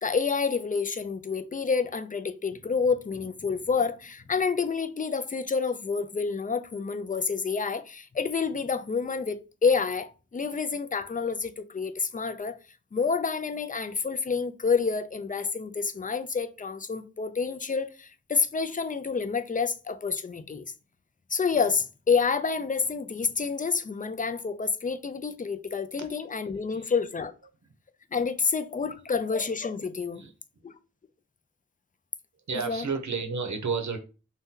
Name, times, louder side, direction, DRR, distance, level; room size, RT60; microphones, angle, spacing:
voice 1, 0.0-12.6 12.9-20.6 21.3-27.3 28.1-30.2 30.6-30.7 32.7-32.8, left 5 dB, 30° left, 0.3 m, -28 dB
voice 2, 32.5-34.0, right 5 dB, 70° right, 0.7 m, -31 dB
2.7 x 2.2 x 3.6 m
wide cardioid pair, 50°, 30 cm